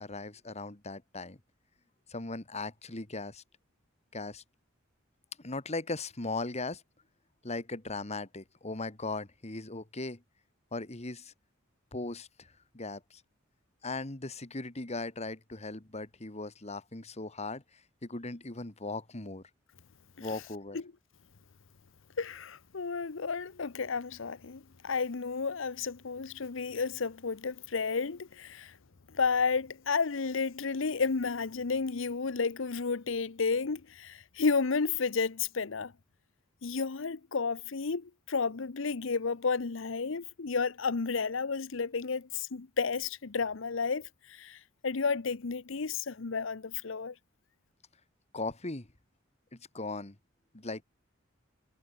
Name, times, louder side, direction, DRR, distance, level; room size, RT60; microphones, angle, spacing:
voice 1, 0.0-1.4 2.1-3.4 4.1-4.4 5.4-6.8 7.4-10.2 10.7-11.3 11.9-12.5 12.7-13.2 13.8-17.6 18.0-19.4 20.2-20.8 48.3-48.9 49.5-50.2 50.5-50.8, left 3 dB, 35° left, 2.0 m, -38 dB
voice 2, 22.2-28.7 29.1-35.9 36.6-44.6 44.8-47.1, left 5 dB, 70° left, 0.8 m, -32 dB
head